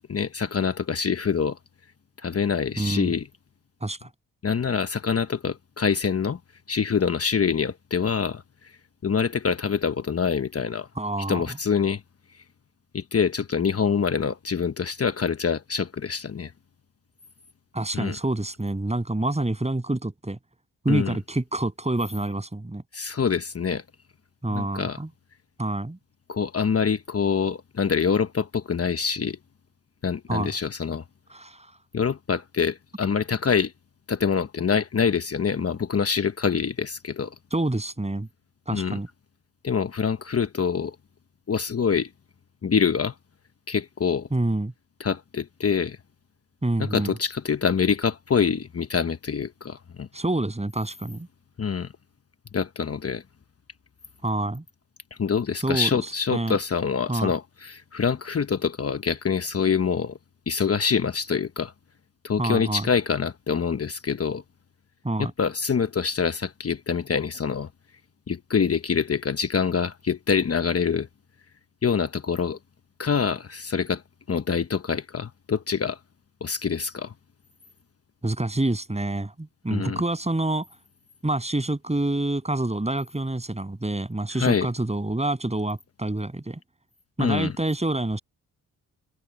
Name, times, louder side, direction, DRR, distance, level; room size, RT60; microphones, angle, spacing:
voice 1, 0.1-1.6 2.2-3.3 4.4-6.4 6.7-10.9 11.3-12.0 12.3-12.4 12.9-16.5 17.9-18.1 20.9-21.2 22.9-23.8 24.5-25.0 26.3-29.4 30.0-31.0 31.9-33.7 34.1-37.3 38.7-39.0 39.6-40.9 41.5-42.1 42.6-43.1 43.7-44.3 45.0-46.0 46.8-50.1 51.6-51.9 52.5-53.2 55.2-60.2 60.5-61.7 62.2-64.4 65.2-67.7 68.3-71.1 71.8-72.6 73.0-74.0 74.3-76.0 76.4-77.1 79.7-80.0 84.3-84.7 87.2-87.5, left 6 dB, 40° left, 1.2 m, -25 dB
voice 2, 2.8-3.1 3.8-4.1 11.0-11.4 17.7-20.4 20.8-22.8 24.4-25.1 25.6-26.0 30.3-30.5 31.3-31.7 37.5-38.3 38.7-39.1 44.3-44.7 46.6-47.1 50.1-51.3 54.2-54.6 55.6-55.9 56.3-56.6 57.1-57.3 62.4-62.9 65.0-65.3 78.2-80.7 81.2-86.6 87.2-88.2, right 2 dB, 15° right, 7.7 m, -27 dB
supercardioid pair, 50°, 37 cm